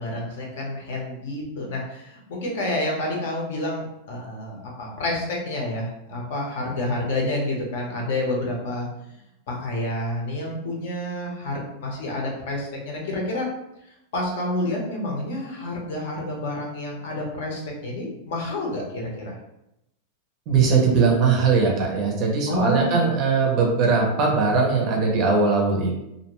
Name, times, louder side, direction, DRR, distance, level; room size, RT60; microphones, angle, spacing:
voice 1, 0.0-8.9 9.5-13.5 14.1-19.3 22.5-23.1, left 1 dB, 55° left, -1 dB, 0.7 m, -29 dB
voice 2, 20.5-26.0, right 4 dB, 30° right, -1 dB, 0.5 m, -20 dB
2.5 x 2.1 x 2.9 m, 0.85 s
supercardioid pair, 180°, 0 cm